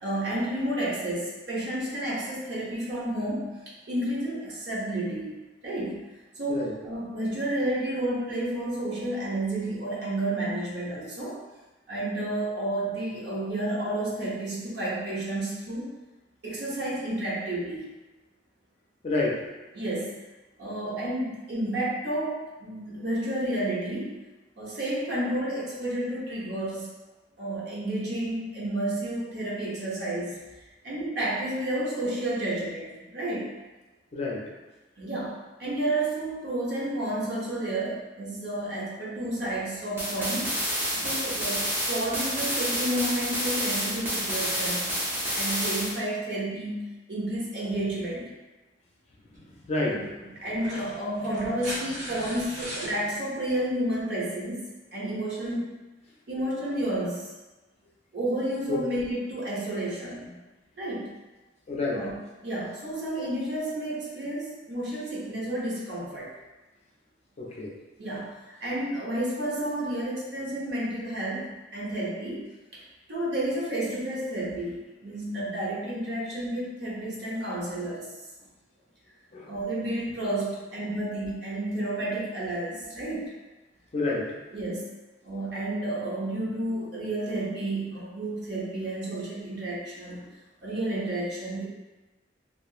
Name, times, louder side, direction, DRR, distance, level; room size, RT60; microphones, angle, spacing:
voice 1, 0.0-6.0 6.4-11.4 11.9-15.9 16.4-17.8 19.7-20.2 20.6-24.2 24.6-26.9 27.4-30.4 30.8-33.5 35.0-40.5 40.9-44.9 45.3-48.2 49.9-50.0 50.4-55.7 56.3-57.3 58.1-60.4 60.8-61.1 61.9-62.1 62.4-66.3 68.0-68.3 68.6-72.5 72.7-72.8 73.1-78.1 79.5-83.3 84.5-84.9 85.2-90.2 90.6-91.7, right 1 dB, 65° right, -6 dB, 0.8 m, -31 dB
voice 2, 19.0-19.5 34.1-34.4 41.0-41.1 49.4-50.1 51.2-51.6 51.9-52.2 52.8-52.9 58.7-58.8 61.7-62.1 67.4-67.7 79.3-79.5 83.9-84.4, left 2 dB, 35° left, -3 dB, 0.4 m, -30 dB
sound 1, 40.0-46.0, equal, 10° right, 0.6 m, -29 dB
sound 2, 49.3-49.5 50.5-52.9 54.4-54.5, equal, 40° right, 1.2 m, -37 dB
2.8 x 2.4 x 2.3 m, 1.1 s
head